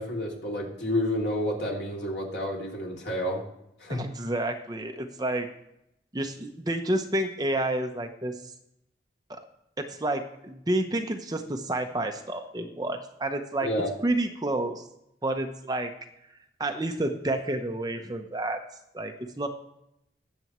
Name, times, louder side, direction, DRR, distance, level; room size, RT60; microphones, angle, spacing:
voice 1, 0.0-3.4 3.8-4.0 13.6-13.9, left 1 dB, 75° left, -2 dB, 2.9 m, -30 dB
voice 2, 3.9-5.5 6.1-8.4 9.3-9.4 9.8-13.7 14.0-14.8 15.2-15.9 16.6-18.6 18.9-19.5, right 1 dB, 20° right, 5 dB, 0.8 m, -29 dB
20.0 x 7.0 x 3.1 m, 0.82 s
head